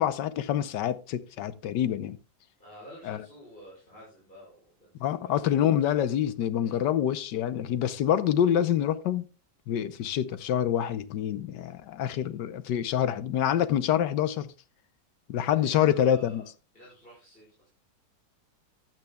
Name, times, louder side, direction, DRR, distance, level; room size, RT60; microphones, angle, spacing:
voice 1, 0.0-2.2 3.1-3.2 5.0-9.2 9.7-14.5 15.3-16.4, left 10 dB, 70° left, 1.4 m, -26 dB
voice 2, 2.6-5.5 6.6-6.8 15.5-16.5 16.7-17.7, equal, 25° left, 6.1 m, -50 dB
15.5 x 10.5 x 2.3 m
omnidirectional pair, 2.0 m